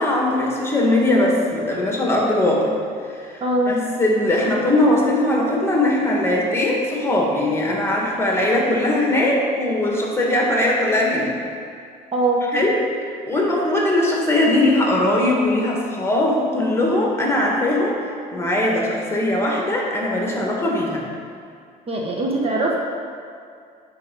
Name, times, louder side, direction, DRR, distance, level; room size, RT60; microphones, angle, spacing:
voice 1, 0.0-2.7 3.1-11.3 12.5-12.8 13.2-21.0, left 1 dB, 15° left, -2 dB, 1.6 m, -20 dB
voice 2, 3.4-3.7 12.1-12.4 21.9-22.8, right 2 dB, 35° right, -1 dB, 1.1 m, -21 dB
9.1 x 4.4 x 5.4 m, 2.3 s
cardioid pair, 110°, 17 cm